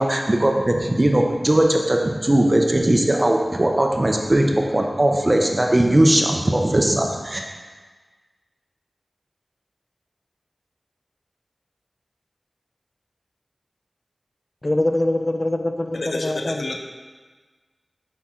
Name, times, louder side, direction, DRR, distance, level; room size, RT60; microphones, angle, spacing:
voice 1, 0.0-7.4, right 1 dB, 35° right, 2 dB, 0.7 m, -19 dB
voice 2, 14.6-16.6, left 1 dB, 40° left, 6 dB, 0.4 m, -23 dB
voice 3, 15.9-16.8, left 2 dB, 85° left, 3 dB, 0.6 m, -29 dB
5.8 x 5.8 x 3.7 m, 1.4 s
wide cardioid pair, 45°, 0 cm